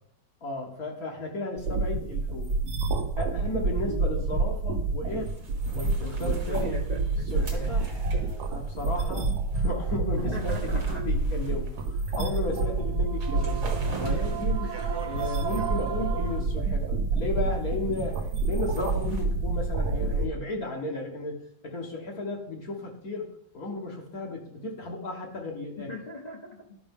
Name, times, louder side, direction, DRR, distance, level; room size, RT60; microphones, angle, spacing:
voice 1, 0.4-2.5 3.2-5.3 5.7-6.8 7.3-7.8 8.5-11.7 12.2-13.6 14.0-14.7 15.0-21.4 21.6-23.3 23.5-25.9, left 2 dB, 60° left, 0 dB, 1.7 m, -34 dB
sound 1, 1.6-20.3, right 3 dB, 70° right, 1.3 m, -28 dB
sound 2, 5.1-9.0 9.5-9.6 10.0-12.1 12.6-12.7 13.1-15.0 18.7-19.3, right 3 dB, 50° right, 1.9 m, -41 dB
voice 2, 6.0-7.9 10.2-11.1 12.1-12.2 25.8-26.7, left 1 dB, 30° left, -2 dB, 0.9 m, -41 dB
sound 3, 7.3-11.1 12.0-16.4, right 7 dB, 35° right, 0.4 m, -39 dB
12.0 x 5.1 x 3.6 m, 0.70 s
omnidirectional pair, 1.9 m